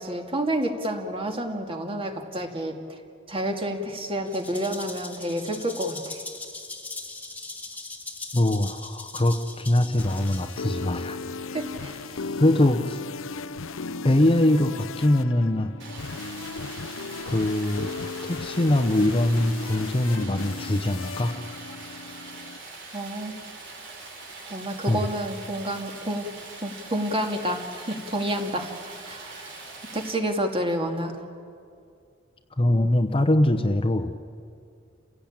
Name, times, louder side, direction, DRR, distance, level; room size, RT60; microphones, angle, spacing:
voice 1, 0.0-3.0 3.3-6.2 11.5-12.2 21.9-22.2 22.9-23.4 24.4-26.3 26.6-28.7 29.1-29.6 29.9-31.1, right 1 dB, 30° right, 3 dB, 2.3 m, -29 dB
Rattle (instrument), 4.3-10.8, left 3 dB, 10° left, 1.9 m, -40 dB
voice 2, 8.3-11.2 12.4-13.0 14.0-15.7 17.3-17.9 18.2-21.3 24.9-25.0 32.6-34.1, left 1 dB, 30° left, 7 dB, 0.8 m, -22 dB
sound 1, 9.8-22.6, left 4 dB, 80° left, 0.7 m, -36 dB
Stream, 15.8-30.1, right 3 dB, 65° right, 4.9 m, -43 dB
29.5 x 16.5 x 8.8 m, 2.3 s
head